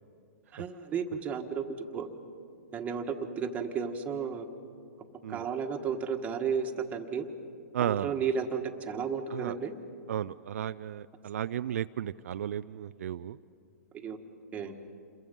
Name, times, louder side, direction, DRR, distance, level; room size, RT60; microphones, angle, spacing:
voice 1, 0.5-2.1 2.7-4.5 5.3-7.3 7.8-9.7 13.9-14.2 14.5-14.7, right 6 dB, 20° right, 4 dB, 1.5 m, -33 dB
voice 2, 7.7-8.1 9.3-9.6 10.1-13.4, right 10 dB, 70° right, 12 dB, 0.4 m, -34 dB
28.5 x 22.0 x 5.4 m, 2.4 s
hypercardioid pair, 135°, 8 cm